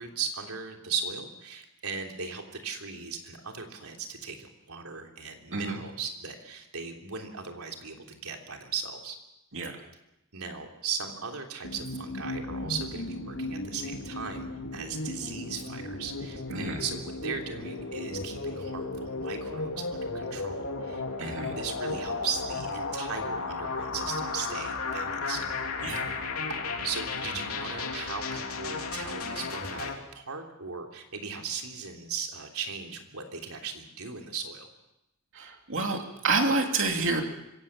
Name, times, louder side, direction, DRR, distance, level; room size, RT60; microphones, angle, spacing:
voice 1, 0.0-9.2 10.3-14.5 14.7-25.4 26.8-34.7, right 5 dB, 85° right, 2 dB, 3.3 m, -37 dB
sound 1, 11.6-29.9, left 3 dB, 80° left, 3.4 m, -35 dB
voice 2, 16.5-16.8 21.2-21.5 25.8-26.2 35.3-37.2, right 3 dB, 65° right, 3 dB, 2.9 m, -28 dB
25.5 x 16.5 x 7.4 m, 0.90 s
head